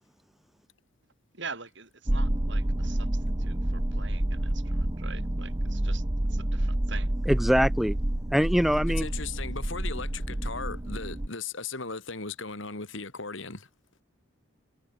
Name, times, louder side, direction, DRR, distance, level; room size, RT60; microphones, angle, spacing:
voice 1, 1.3-6.0 6.3-7.1, right 5 dB, 60° right, 6.8 m, -44 dB
sound 1, 2.1-11.3, right 1 dB, 20° right, 1.0 m, -29 dB
voice 2, 7.3-8.0 8.3-9.1, equal, ahead, 0.5 m, -23 dB
voice 3, 9.0-13.7, left 4 dB, 65° left, 2.6 m, -37 dB
head